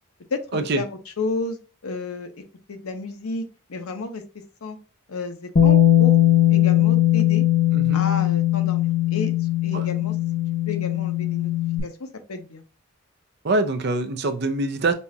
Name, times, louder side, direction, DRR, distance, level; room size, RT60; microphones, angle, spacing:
voice 1, 0.3-0.9 1.2-2.4 2.7-3.4 3.7-4.2 4.6-4.8 5.1-6.2 6.5-7.4 7.9-9.3 9.6-10.1 10.7-11.5 11.8-12.6, left 3 dB, 90° left, 0.7 m, -31 dB
Bass guitar, 5.6-11.8, left 13 dB, 40° left, 0.6 m, -19 dB
voice 2, 7.7-8.0 9.7-9.9 13.4-14.9, right 2 dB, 50° right, 0.5 m, -24 dB
5.4 x 2.4 x 2.7 m
head